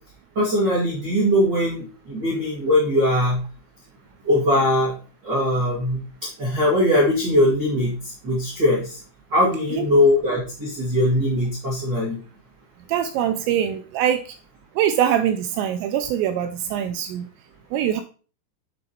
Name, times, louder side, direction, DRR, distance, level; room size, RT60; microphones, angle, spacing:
voice 1, 0.3-3.4 4.2-4.9 5.2-6.0 6.4-9.0 9.3-12.2, left 1 dB, 50° right, -6 dB, 1.3 m, -20 dB
voice 2, 12.9-14.2 14.8-17.2 17.7-18.0, right 10 dB, 85° right, 7 dB, 2.6 m, -23 dB
7.7 x 7.4 x 2.9 m, 0.38 s
omnidirectional pair, 5.3 m